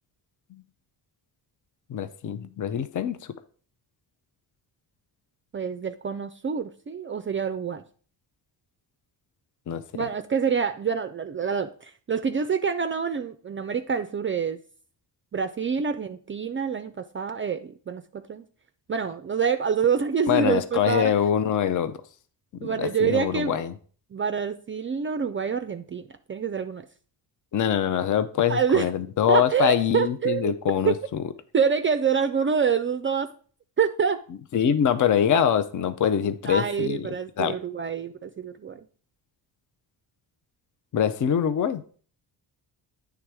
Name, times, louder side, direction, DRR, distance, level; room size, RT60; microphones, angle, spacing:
voice 1, 1.9-3.3 9.7-10.1 20.3-22.0 22.5-23.7 27.5-31.2 34.5-37.5 40.9-41.8, left 9 dB, 45° left, 11 dB, 0.6 m, -24 dB
voice 2, 5.5-7.8 9.9-14.6 15.3-18.4 18.9-21.1 22.6-23.6 24.1-26.9 28.5-28.9 29.3-30.5 30.8-31.0 31.5-33.3 33.8-34.2 36.4-38.9, right 6 dB, 30° right, 10 dB, 0.4 m, -26 dB
8.7 x 3.5 x 4.7 m, 0.43 s
cardioid pair, 75°, 43 cm